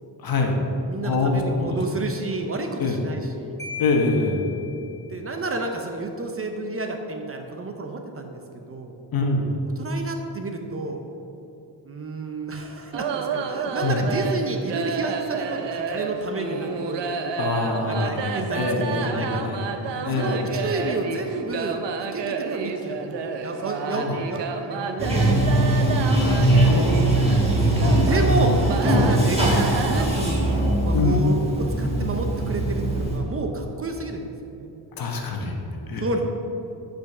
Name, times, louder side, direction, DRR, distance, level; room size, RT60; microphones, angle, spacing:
voice 1, 0.2-0.6 1.0-1.8 2.8-3.0 3.8-4.5 9.1-9.5 13.8-14.0 17.4-20.6 23.9-24.2 26.1-28.0 28.6-28.7 30.9-31.2 35.0-36.0, left 3 dB, 55° left, 1 dB, 1.2 m, -25 dB
voice 2, 0.9-3.6 5.1-8.9 9.8-11.0 11.8-17.2 17.9-18.7 18.9-19.5 20.1-23.1 23.4-26.0 28.0-30.5 30.8-34.8 36.0-36.2, right 2 dB, 30° right, 3 dB, 0.7 m, -30 dB
Marimba xylophone, 3.6-5.3, left 6 dB, 5° left, 1.6 m, -38 dB
sound 1, 12.9-30.6, right 5 dB, 75° right, 0.7 m, -31 dB
Bathtub (filling or washing), 25.0-33.2, right 1 dB, 15° right, 1.5 m, -21 dB
8.0 x 5.2 x 6.0 m, 2.8 s
wide cardioid pair, 140°, 43 cm